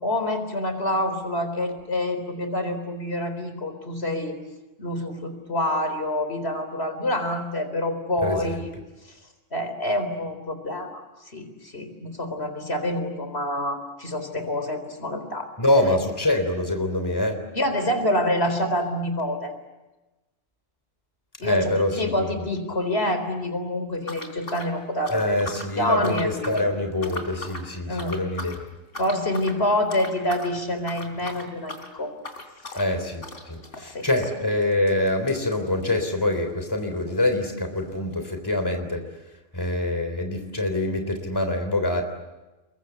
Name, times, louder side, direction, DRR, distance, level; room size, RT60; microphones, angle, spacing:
voice 1, 0.0-4.4 4.8-8.7 9.5-11.0 11.3-15.5 17.5-19.5 21.4-26.6 27.9-28.1 29.0-32.1 33.8-34.1, left 1 dB, 55° left, 8 dB, 4.3 m, -27 dB
voice 2, 8.2-8.6 15.6-17.4 21.4-22.3 25.1-28.5 32.8-39.0 39.5-42.0, left 1 dB, 15° left, 6 dB, 3.6 m, -25 dB
sound 1, 24.0-25.7 26.0-26.7 27.0-27.7 28.0-28.6 28.9-29.6 29.9-30.5 30.8-36.5 36.8-36.9 37.1-37.2 37.8-37.9, left 2 dB, 75° left, 4.0 m, -39 dB
29.5 x 23.0 x 8.2 m, 1.1 s
omnidirectional pair, 1.3 m